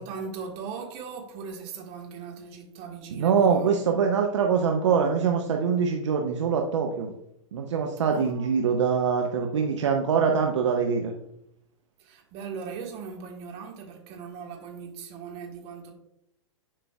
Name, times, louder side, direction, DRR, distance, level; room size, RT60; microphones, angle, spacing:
voice 1, 0.0-3.7 8.1-8.8 12.0-15.9, right 6 dB, 35° right, 1 dB, 1.6 m, -39 dB
voice 2, 3.2-7.1 7.5-11.1, right 6 dB, 60° right, 3 dB, 0.7 m, -24 dB
10.5 x 4.9 x 2.3 m, 0.77 s
figure-of-eight pair, 105°, 17 cm